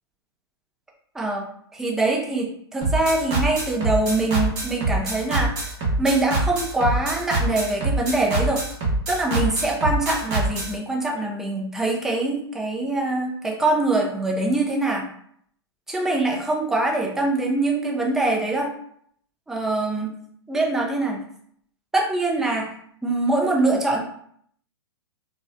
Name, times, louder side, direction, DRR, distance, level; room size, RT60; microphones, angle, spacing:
voice 1, 1.1-1.5 1.7-5.5 6.0-8.6 9.1-15.1 15.9-18.7 19.5-20.2 20.5-21.2 21.9-22.7 23.0-24.0, right 2 dB, 5° right, -1 dB, 0.3 m, -23 dB
sound 1, 2.8-10.7, right 2 dB, 30° right, 0.8 m, -24 dB
2.4 x 2.1 x 2.4 m, 0.66 s
hypercardioid pair, 125°, 14 cm